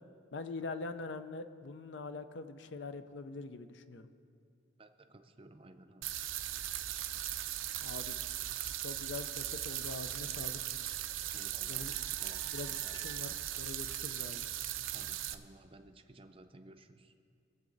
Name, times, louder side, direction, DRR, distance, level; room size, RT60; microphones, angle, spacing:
voice 1, 0.3-4.1 7.8-8.2 8.8-10.6 11.7-12.0 12.5-14.4, left 3 dB, 65° left, 10 dB, 0.5 m, -43 dB
voice 2, 4.8-6.2 11.3-11.9 12.2-13.0 14.9-17.1, right 2 dB, 25° right, 7 dB, 0.5 m, -56 dB
sound 1, 6.0-15.3, right 12 dB, 80° right, 0.6 m, -38 dB
21.5 x 7.5 x 3.9 m, 2.4 s
head